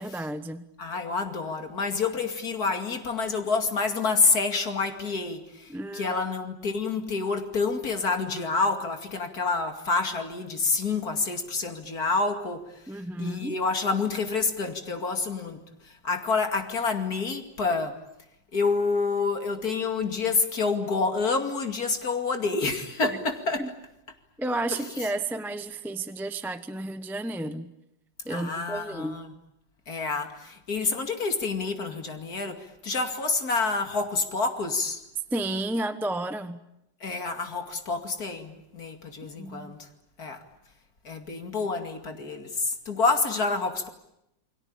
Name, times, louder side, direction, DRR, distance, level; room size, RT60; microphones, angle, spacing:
voice 1, 0.0-0.7 5.7-6.2 12.9-13.6 23.6-23.7 24.4-27.7 28.2-29.2 35.3-36.6 39.4-39.8, right 2 dB, ahead, 0.6 m, -32 dB
voice 2, 0.8-12.9 13.2-18.0 18.5-23.7 24.7-24.8 28.3-29.3 29.9-35.0 37.0-39.9 40.2-40.4 41.0-43.9, left 4 dB, 55° left, 2.9 m, -28 dB
29.0 x 22.0 x 8.7 m
omnidirectional pair, 2.0 m